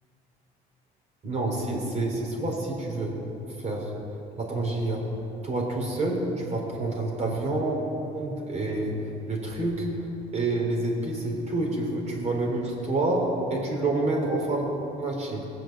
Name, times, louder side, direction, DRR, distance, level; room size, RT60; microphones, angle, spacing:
voice 1, 1.2-3.2 3.6-3.9 4.4-5.0 5.4-7.8 8.1-9.0 9.3-9.9 10.3-14.7 15.0-15.5, right 2 dB, 40° right, -1 dB, 4.0 m, -28 dB
19.5 x 7.6 x 7.5 m, 2.9 s
cardioid pair, 110°, 17 cm